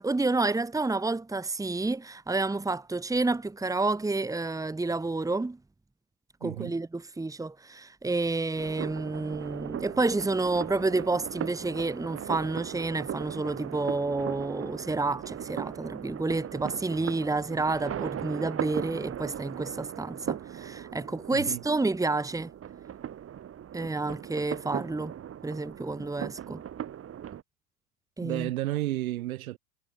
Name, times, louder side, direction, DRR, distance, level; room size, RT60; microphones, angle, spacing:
voice 1, 0.0-5.6 6.4-22.5 23.7-25.1 25.4-26.6 28.2-28.5, right 3 dB, 5° right, 2.9 m, -29 dB
voice 2, 6.4-6.7 21.3-21.6 28.2-29.6, right 16 dB, 60° right, 5.2 m, -32 dB
sound 1, 8.6-27.4, right 10 dB, 30° right, 8.0 m, -38 dB
figure-of-eight pair, 90°, 47 cm